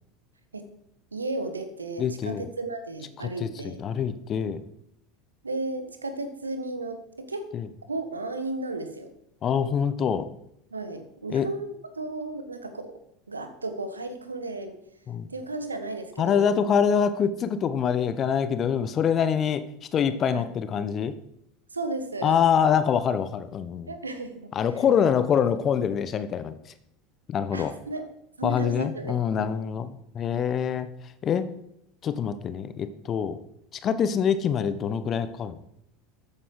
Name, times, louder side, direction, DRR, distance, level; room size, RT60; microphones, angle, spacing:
voice 1, 1.1-3.9 5.4-7.5 7.9-9.1 10.7-13.0 13.3-14.8 15.3-16.6 20.3-20.5 21.7-22.4 23.9-24.5 27.5-28.1 28.4-29.5, right 2 dB, 85° right, 9 dB, 1.4 m, -34 dB
voice 2, 2.0-2.4 3.4-4.6 7.5-7.7 9.4-10.3 11.3-11.5 15.1-15.3 16.2-21.1 22.2-23.9 24.5-26.5 27.3-27.7 28.4-30.9 31.2-31.5 32.0-33.4 33.8-35.6, left 7 dB, 35° left, 12 dB, 1.1 m, -25 dB
13.5 x 9.0 x 4.8 m, 0.77 s
figure-of-eight pair, 75°, 0 cm